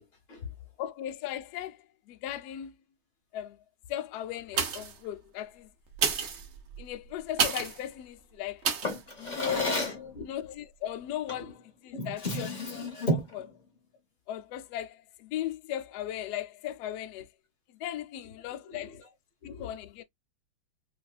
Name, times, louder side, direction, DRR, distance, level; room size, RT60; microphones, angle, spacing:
voice 1, 0.0-0.7 9.7-10.3 11.4-11.5 11.9-12.1 18.2-18.3 18.6-19.1 19.4-19.7, left 5 dB, 55° left, 2.4 m, -46 dB
voice 2, 0.8-2.7 3.3-3.6 3.9-5.7 6.8-8.7 9.2-9.8 10.2-11.5 11.8-13.5 14.3-17.3 17.8-19.0 19.4-20.0, left 11 dB, 85° left, 0.8 m, -37 dB
sound 1, 4.5-5.1 5.9-7.8 8.6-9.0 9.5-9.6, right 6 dB, 75° right, 0.6 m, -30 dB
Drawer open or close, 8.8-10.1 11.3-11.5 11.9-13.4, left 1 dB, 35° left, 0.8 m, -31 dB
5.2 x 2.3 x 2.3 m
omnidirectional pair, 2.3 m